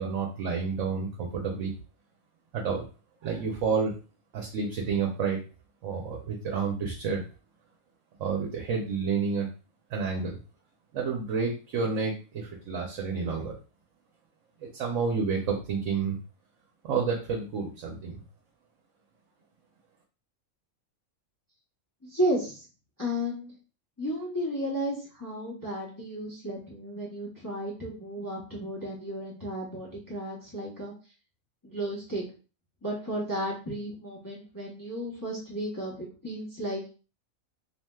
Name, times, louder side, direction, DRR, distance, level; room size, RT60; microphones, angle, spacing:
voice 1, 0.0-1.7 2.5-2.8 3.2-3.9 4.3-5.4 5.8-7.2 8.2-9.5 9.9-10.4 10.9-13.5 14.6-16.2 16.8-18.2, right 5 dB, 65° right, 0 dB, 0.9 m, -30 dB
voice 2, 22.0-22.6 23.0-23.5 24.0-30.9 31.6-32.2 32.8-36.9, equal, 20° left, -5 dB, 0.7 m, -33 dB
3.1 x 2.7 x 2.2 m, 0.35 s
omnidirectional pair, 1.5 m